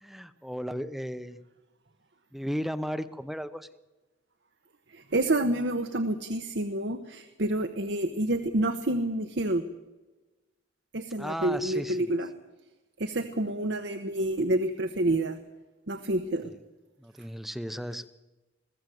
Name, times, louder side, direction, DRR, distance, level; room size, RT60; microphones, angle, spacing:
voice 1, 0.0-1.4 2.3-3.7 11.2-12.1 16.4-16.6 17.0-18.1, equal, ahead, 13 dB, 0.8 m, -35 dB
voice 2, 4.9-9.6 10.9-12.3 13.0-15.4 15.9-16.5, right 1 dB, 70° right, 8 dB, 1.1 m, -28 dB
21.5 x 16.0 x 7.9 m, 1.1 s
head